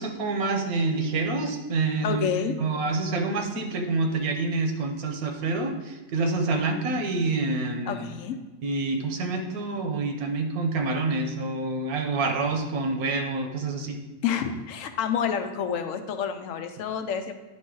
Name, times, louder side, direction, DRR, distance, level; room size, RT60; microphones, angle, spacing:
voice 1, 0.0-2.3 2.6-8.0 8.6-14.0, right 3 dB, 85° right, 4 dB, 1.3 m, -27 dB
voice 2, 2.0-2.5 7.9-8.4 14.2-17.3, left 7 dB, 70° left, 8 dB, 0.9 m, -28 dB
10.0 x 3.7 x 3.8 m, 1.2 s
omnidirectional pair, 1.5 m